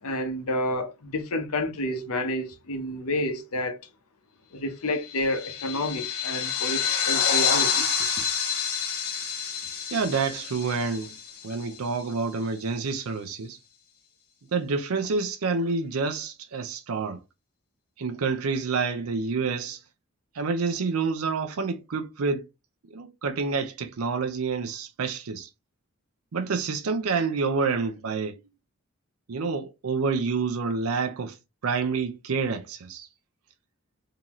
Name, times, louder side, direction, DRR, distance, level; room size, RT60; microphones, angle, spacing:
voice 1, 0.0-3.8 4.5-8.1, left 1 dB, 90° left, 0.9 m, -30 dB
sound 1, 5.0-11.9, left 7 dB, 65° left, 1.5 m, -28 dB
voice 2, 9.9-11.1 11.4-13.6 14.5-17.2 18.0-19.8 20.3-22.5 22.9-25.5 26.3-28.4 29.3-31.4 31.6-33.1, right 4 dB, 80° right, 0.6 m, -28 dB
3.9 x 2.8 x 3.0 m
head